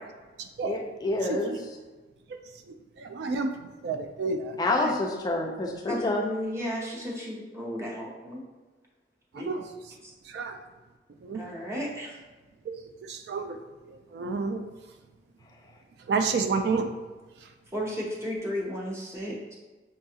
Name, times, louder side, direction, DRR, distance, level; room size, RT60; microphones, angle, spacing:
voice 1, 0.6-1.7 4.6-6.2, left 2 dB, 20° left, 1 dB, 0.3 m, -28 dB
voice 2, 3.0-3.5 3.8-4.6 4.8-4.9 9.4-9.6 10.3-10.6 11.2-11.4 12.7-12.8 13.0-13.6 13.9-14.6 16.1-16.9, right 4 dB, 65° right, 6 dB, 0.3 m, -29 dB
voice 3, 5.9-8.4 9.3-9.5 10.0-10.1 11.3-12.2 17.7-19.6, equal, 15° right, -3 dB, 0.7 m, -34 dB
5.5 x 2.3 x 2.7 m, 1.3 s
head